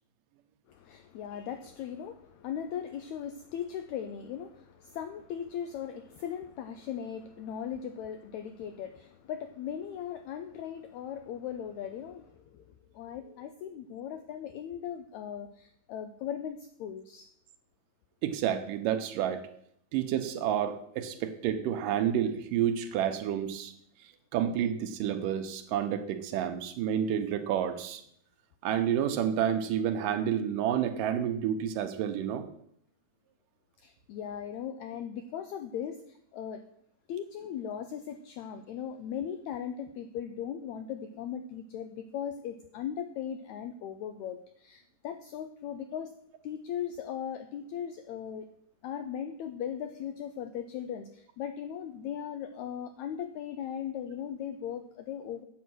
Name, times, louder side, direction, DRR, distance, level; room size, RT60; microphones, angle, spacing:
voice 1, 0.7-17.3 33.8-36.6 37.1-46.1 46.4-48.5 48.8-55.4, left 9 dB, 90° left, 9 dB, 1.6 m, -38 dB
voice 2, 18.2-19.5 19.9-23.7 24.3-28.0 28.6-32.5, right 9 dB, 80° right, 8 dB, 2.4 m, -29 dB
8.2 x 8.2 x 6.2 m, 0.68 s
omnidirectional pair, 4.0 m